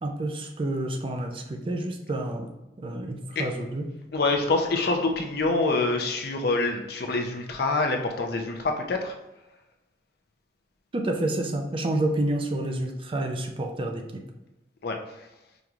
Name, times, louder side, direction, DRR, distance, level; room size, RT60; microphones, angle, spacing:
voice 1, 0.0-2.5 2.8-3.8 10.9-14.2, right 1 dB, 30° right, 3 dB, 0.4 m, -29 dB
voice 2, 4.1-9.1 14.8-15.0, left 3 dB, 60° left, 4 dB, 0.5 m, -26 dB
5.1 x 2.9 x 2.4 m, 0.97 s
head